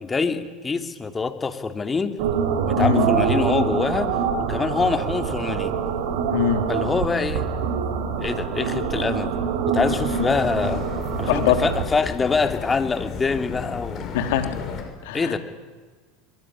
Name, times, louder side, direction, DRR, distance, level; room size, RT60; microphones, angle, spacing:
voice 1, 0.0-2.1 2.7-4.1 4.5-5.8 6.7-7.5 8.2-9.4 9.7-10.8 11.2-14.1 15.1-15.4, left 4 dB, 20° left, 7 dB, 2.7 m, -25 dB
sound 1, 2.2-11.8, right 6 dB, 65° right, 3.5 m, -25 dB
voice 2, 2.8-3.1 6.3-6.6 11.3-11.6 14.1-14.5 15.0-15.4, left 10 dB, 70° left, 7 dB, 3.2 m, -22 dB
sound 2, 9.8-14.8, left 6 dB, 40° left, 6.1 m, -34 dB
23.0 x 23.0 x 10.0 m, 1.4 s
hypercardioid pair, 90°, 0 cm